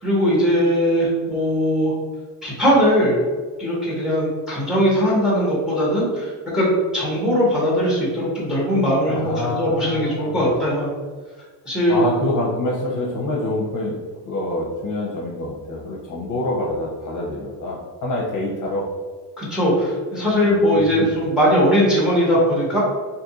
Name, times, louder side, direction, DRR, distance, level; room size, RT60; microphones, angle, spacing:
voice 1, 0.0-1.9 2.4-3.2 3.6-10.9 11.7-12.0 19.4-22.8, equal, ahead, -5 dB, 0.9 m, -19 dB
voice 2, 9.0-10.5 11.9-14.0 14.3-18.9 20.4-21.1, left 2 dB, 45° left, -3 dB, 0.7 m, -26 dB
2.7 x 2.5 x 3.9 m, 1.4 s
cardioid pair, 170°, 42 cm